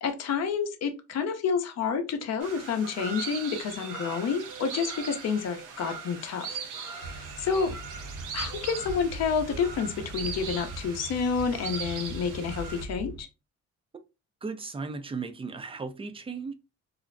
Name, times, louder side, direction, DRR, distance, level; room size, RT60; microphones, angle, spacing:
voice 1, 0.0-6.6 6.8-7.8 8.3-13.3, left 6 dB, 60° left, 0.5 m, -29 dB
sound 1, 2.4-12.9, right 6 dB, 90° right, 0.6 m, -39 dB
sound 2, 4.5-4.7 5.5-5.7 6.5-6.7 7.5-7.7 8.5-8.7 9.5-9.8, right 5 dB, 20° left, 0.6 m, -48 dB
sound 3, 7.0-13.2, right 2 dB, 65° right, 1.2 m, -41 dB
voice 2, 14.4-16.5, right 4 dB, 20° right, 0.3 m, -36 dB
2.4 x 2.0 x 2.4 m
cardioid pair, 90°, 30 cm